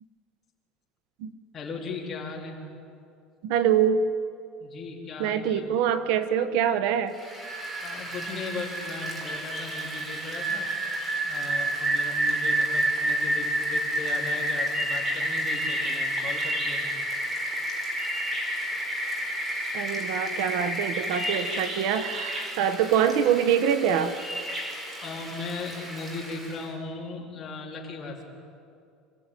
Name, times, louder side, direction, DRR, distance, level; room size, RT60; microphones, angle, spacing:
voice 1, 1.5-2.6 4.6-5.7 7.8-10.7 11.2-16.8 25.0-28.3, left 4 dB, 25° left, -2 dB, 3.9 m, -37 dB
voice 2, 3.4-4.0 5.2-7.1 19.7-24.1, right 8 dB, 65° right, 11 dB, 1.2 m, -24 dB
Rain, 7.2-26.6, right 1 dB, 20° right, 4.2 m, -30 dB
27.0 x 16.0 x 9.2 m, 2.4 s
cardioid pair, 165°, 0 cm